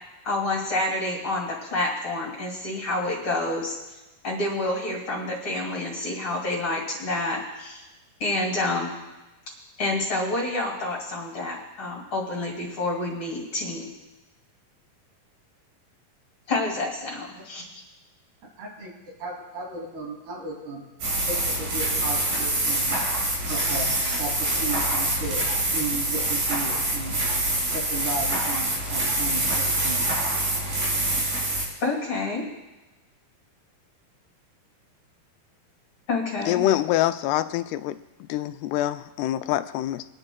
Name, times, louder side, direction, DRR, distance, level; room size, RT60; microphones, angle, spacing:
voice 1, 0.2-3.8 4.2-7.8 8.2-8.9 9.8-13.9 16.5-17.6 31.8-32.4 36.1-36.6, left 2 dB, 40° left, 2.4 m, -28 dB
voice 2, 18.6-18.9 19.2-20.8 21.3-23.0 23.5-27.2 27.7-30.2 30.7-30.8, right 2 dB, 90° right, 4.9 m, -35 dB
sound 1, 21.0-31.6, right 1 dB, 65° right, 5.1 m, -25 dB
voice 3, 36.5-38.0 38.3-40.1, left 13 dB, 90° left, 2.6 m, -25 dB
23.5 x 11.0 x 2.3 m
omnidirectional pair, 4.5 m